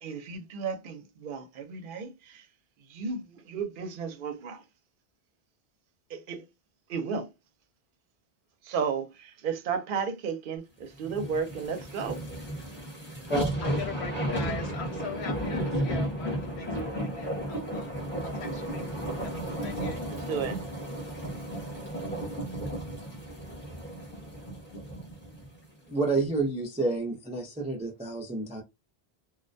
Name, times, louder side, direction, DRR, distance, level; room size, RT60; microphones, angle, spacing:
voice 1, 0.0-2.5 2.9-4.6 6.1-6.5 6.9-7.3 8.6-12.2 20.1-20.6, right 6 dB, 60° right, 0.7 m, -33 dB
sound 1, 11.0-25.5 25.9-26.0, equal, 10° left, 0.8 m, -34 dB
voice 2, 13.6-17.9 18.2-20.0 20.3-20.6, left 5 dB, 80° left, 1.1 m, -41 dB
voice 3, 25.9-28.6, right 3 dB, 10° right, 0.5 m, -29 dB
2.3 x 2.1 x 2.5 m
omnidirectional pair, 1.1 m